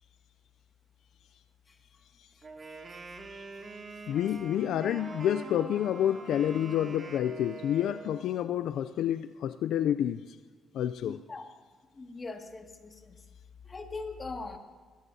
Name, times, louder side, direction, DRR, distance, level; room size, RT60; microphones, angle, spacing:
Wind instrument woodwind instrument, 2.4-8.3, right 3 dB, 40° right, 2.4 m, -45 dB
sound 1, 2.5-8.4, right 2 dB, 70° right, 3.7 m, -52 dB
voice 1, 4.1-10.4 10.7-11.2, left 10 dB, 80° left, 0.4 m, -29 dB
voice 2, 11.0-11.4 11.9-13.2 13.6-14.6, left 3 dB, 30° left, 2.1 m, -41 dB
22.0 x 17.5 x 2.8 m
cardioid pair, 90°, 0 cm